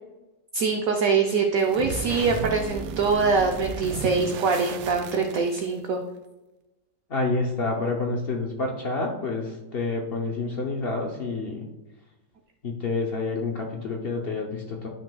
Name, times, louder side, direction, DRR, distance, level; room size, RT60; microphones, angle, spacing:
voice 1, 0.5-6.0, right 4 dB, 65° right, 3 dB, 0.8 m, -23 dB
sound 1, 1.6-5.8, right 6 dB, 85° right, 1.3 m, -35 dB
voice 2, 7.1-11.6 12.6-14.9, left 3 dB, 85° left, 0 dB, 0.5 m, -28 dB
10.0 x 6.0 x 2.3 m, 1.1 s
omnidirectional pair, 2.0 m